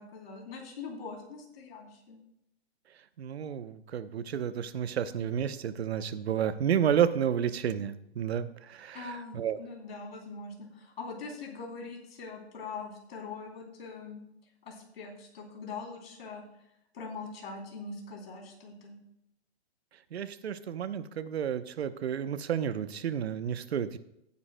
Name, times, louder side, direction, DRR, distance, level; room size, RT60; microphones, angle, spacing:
voice 1, 0.0-2.2 8.9-14.2 14.6-16.4 16.9-19.0, left 4 dB, 65° left, 0 dB, 3.3 m, -42 dB
voice 2, 3.2-9.6 20.1-24.0, right 9 dB, 75° right, 12 dB, 0.9 m, -31 dB
16.5 x 9.5 x 2.2 m, 0.81 s
hypercardioid pair, 155°, 32 cm